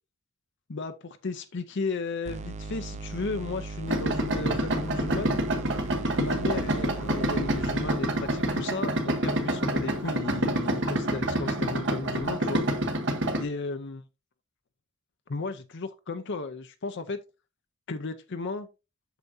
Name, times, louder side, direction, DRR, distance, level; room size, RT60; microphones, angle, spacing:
voice 1, 0.7-5.4 6.2-12.6 13.4-14.0 15.3-17.2 17.9-18.7, left 3 dB, 55° left, 0.7 m, -34 dB
sound 1, 2.2-8.0, right 3 dB, 35° right, 0.4 m, -38 dB
Idling, 3.9-13.4, right 1 dB, 60° right, 1.3 m, -27 dB
8.2 x 6.7 x 2.7 m
head